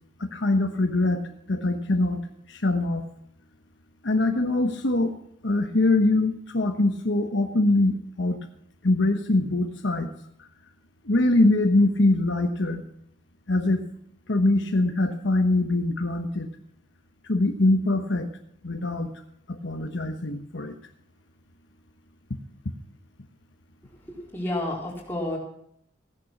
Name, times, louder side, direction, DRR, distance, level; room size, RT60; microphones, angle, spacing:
voice 1, 0.2-1.2 1.5-3.0 4.0-5.1 5.4-8.4 8.8-10.1 11.0-12.8 13.5-13.8 14.3-16.5 17.3-18.3 18.6-19.1 19.5-20.7, left 2 dB, 65° left, 5 dB, 1.1 m, -23 dB
voice 2, 24.1-25.4, left 1 dB, 10° left, -4 dB, 4.3 m, -30 dB
16.5 x 10.5 x 6.0 m, 0.72 s
head